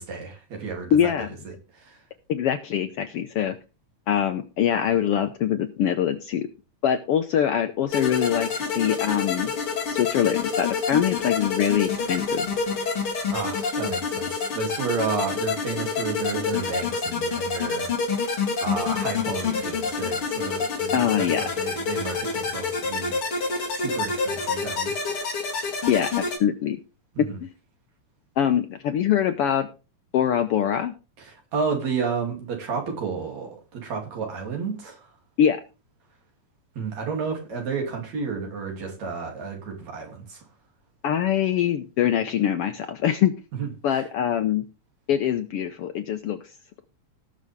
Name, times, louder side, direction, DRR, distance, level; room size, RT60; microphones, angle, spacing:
voice 1, 0.0-1.1 1.4-2.0 13.3-23.2 23.8-25.2 27.2-27.4 31.2-35.1 36.8-40.4 43.6-44.0, right 5 dB, 70° right, 4.1 m, -32 dB
voice 2, 0.9-1.3 2.3-3.6 4.1-6.5 6.8-9.5 9.9-12.5 20.9-21.4 25.9-26.8 27.2-27.5 28.4-29.7 30.1-30.9 35.4-35.6 41.0-43.3 43.8-44.6 45.1-46.4, left 9 dB, 70° left, 1.4 m, -23 dB
sound 1, 7.9-26.4, left 5 dB, 45° left, 3.5 m, -27 dB
18.0 x 6.3 x 3.5 m
omnidirectional pair, 3.3 m